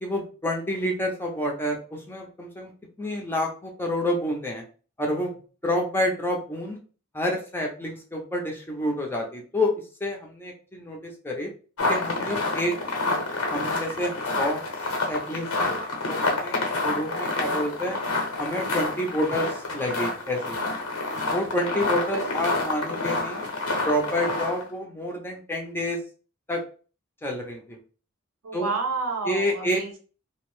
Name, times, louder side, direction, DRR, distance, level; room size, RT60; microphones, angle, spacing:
voice 1, 0.0-2.7 3.0-4.6 5.0-5.3 5.6-6.8 7.1-9.7 10.0-11.5 11.9-12.8 13.5-14.6 15.1-15.8 16.1-18.0 18.4-20.6 21.3-23.5 23.8-26.0 26.5-26.6 27.2-27.8 28.5-28.7 29.3-29.8, left 1 dB, 10° left, 1 dB, 0.5 m, -28 dB
sound 1, 11.8-24.7, left 2 dB, 90° left, 0.8 m, -28 dB
voice 2, 28.4-30.0, right 4 dB, 85° right, 3 dB, 0.7 m, -31 dB
2.6 x 2.0 x 3.0 m, 0.37 s
head